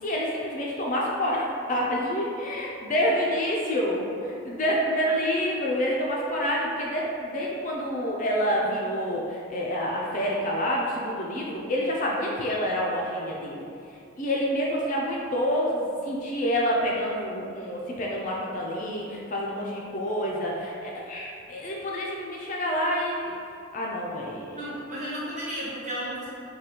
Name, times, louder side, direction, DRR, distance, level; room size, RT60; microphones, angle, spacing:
voice 1, 0.0-13.6 14.2-23.4 23.7-24.6, equal, 40° left, -3 dB, 0.4 m, -28 dB
voice 2, 24.5-26.3, equal, 35° right, -9 dB, 1.0 m, -33 dB
4.8 x 2.2 x 2.8 m, 2.5 s
head